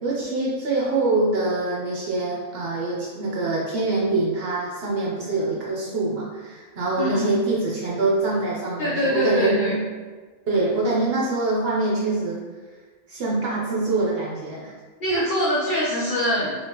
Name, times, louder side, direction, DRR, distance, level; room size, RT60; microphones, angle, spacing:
voice 1, 0.0-9.8 10.5-12.4 13.1-14.7, right 2 dB, 55° right, -4 dB, 0.7 m, -24 dB
voice 2, 7.0-7.4 8.8-9.8 15.0-16.7, equal, 75° left, -5 dB, 0.4 m, -24 dB
3.4 x 3.0 x 2.8 m, 1.4 s
omnidirectional pair, 1.5 m